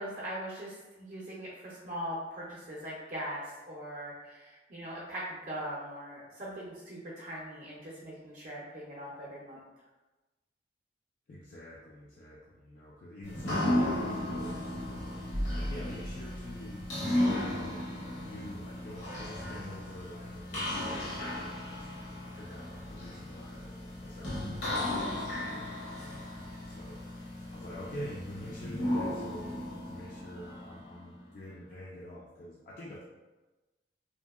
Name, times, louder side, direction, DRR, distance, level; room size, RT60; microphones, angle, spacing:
voice 1, 0.0-9.6, equal, 45° right, -6 dB, 0.5 m, -41 dB
voice 2, 11.3-16.9 17.4-27.1 27.5-33.0, equal, 45° left, -5 dB, 0.3 m, -47 dB
sound 1, 13.2-31.1, left 1 dB, 75° left, 1.0 m, -35 dB
2.7 x 2.6 x 2.3 m, 1.1 s
head